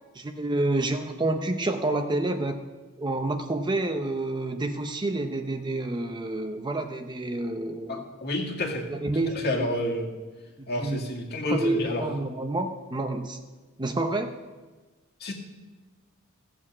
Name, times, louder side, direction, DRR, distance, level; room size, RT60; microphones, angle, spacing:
voice 1, 0.1-2.6 3.0-8.0 8.9-9.7 10.6-11.0 11.5-13.4 13.8-14.3, right 2 dB, 20° right, 6 dB, 0.6 m, -28 dB
voice 2, 7.9-8.9 9.3-10.2 10.7-12.0 15.2-15.3, left 1 dB, 45° left, 0 dB, 1.9 m, -29 dB
16.0 x 7.4 x 6.0 m, 1.3 s
head